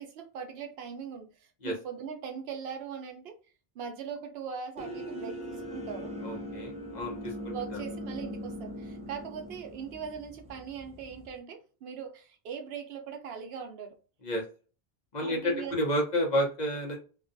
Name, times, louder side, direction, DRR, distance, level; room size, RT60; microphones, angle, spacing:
voice 1, 0.0-3.4 3.7-6.1 7.5-14.0 15.2-15.8, right 7 dB, 80° right, 5 dB, 0.8 m, -40 dB
sound 1, 4.8-11.4, equal, 10° right, 0.4 m, -40 dB
voice 2, 6.2-7.3 7.7-7.8 14.2-14.4 15.1-17.0, equal, 50° left, 1 dB, 0.8 m, -30 dB
2.5 x 2.2 x 2.5 m, 0.36 s
omnidirectional pair, 1.0 m